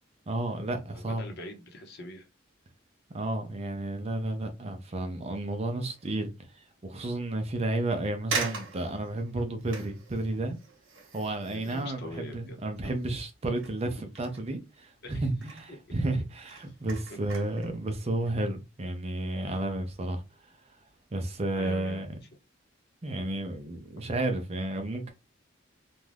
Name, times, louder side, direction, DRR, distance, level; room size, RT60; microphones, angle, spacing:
voice 1, 0.3-1.3 3.1-10.6 11.1-20.2 21.1-22.1 23.0-25.1, right 2 dB, 30° right, 0.5 m, -32 dB
voice 2, 0.9-2.3 11.5-12.6 12.8-12.9 15.0-15.3 15.7-15.8 21.6-22.0 23.9-24.0, left 1 dB, 55° left, 0.8 m, -43 dB
sound 1, 5.9-6.3 6.9-7.0 7.8-7.9 8.3-13.3 13.5-15.0 15.3-15.7 16.2-17.7 18.1-18.3, right 5 dB, 70° right, 1.0 m, -40 dB
2.6 x 2.2 x 3.2 m
head